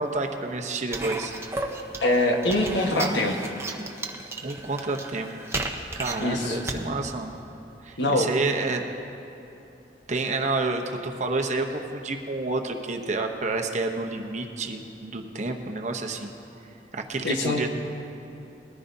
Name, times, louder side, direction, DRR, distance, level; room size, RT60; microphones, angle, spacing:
voice 1, 0.0-1.4 4.4-5.3 6.0-7.3 7.8-8.8 10.1-16.3 16.9-17.7, right 3 dB, 40° right, 3 dB, 0.9 m, -29 dB
sound 1, 0.9-6.8, right 2 dB, 15° right, 0.7 m, -34 dB
voice 2, 2.0-3.4 6.2-6.6 8.0-8.3 17.2-17.7, left 1 dB, 80° left, 2 dB, 1.4 m, -23 dB
20.5 x 14.0 x 2.7 m, 2.8 s
head